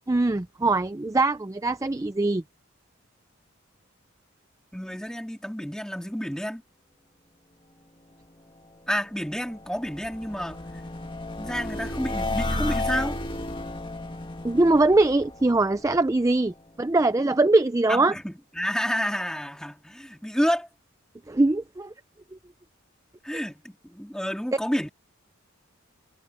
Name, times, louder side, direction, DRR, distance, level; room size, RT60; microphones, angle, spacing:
voice 1, 0.1-2.4 14.4-18.1 21.3-21.9, right 2 dB, 15° right, 0.4 m, -22 dB
voice 2, 4.7-6.6 8.9-10.6 11.4-13.2 17.9-20.7 23.2-24.9, equal, 5° left, 3.1 m, -30 dB
sound 1, 9.1-16.2, left 2 dB, 25° left, 2.0 m, -33 dB
head